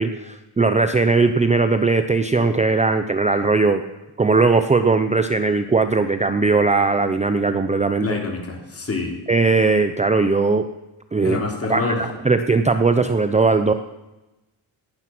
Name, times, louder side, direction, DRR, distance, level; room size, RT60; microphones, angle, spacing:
voice 1, 0.0-3.8 4.2-8.1 9.3-10.7 11.1-11.4 11.7-11.9 12.2-13.7, right 3 dB, 15° right, 9 dB, 0.6 m, -19 dB
voice 2, 8.0-9.2 11.2-12.0, left 3 dB, 30° left, 2 dB, 3.6 m, -26 dB
18.5 x 12.0 x 6.1 m, 1.0 s
wide cardioid pair, 145°, 47 cm